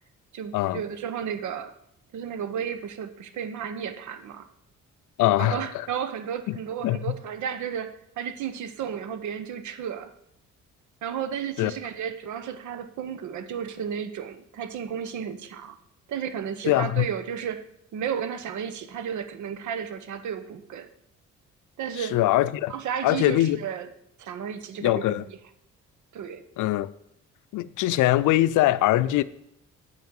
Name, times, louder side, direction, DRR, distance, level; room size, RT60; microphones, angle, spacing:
voice 1, 0.3-1.7 2.1-4.5 5.4-10.1 11.0-15.8 16.1-17.7 17.9-20.9 21.8-22.2 22.7-23.9 24.2-25.2 26.1-26.4, right 8 dB, 75° right, 1.0 m, -33 dB
voice 2, 5.2-5.9 6.5-6.6 6.8-7.1 11.6-11.7 16.7-17.1 22.0-22.7 23.0-23.6 24.8-25.2 26.6-26.9 27.5-29.2, left 15 dB, 85° left, 0.5 m, -22 dB
8.2 x 6.0 x 7.1 m
cardioid pair, 90°, 30 cm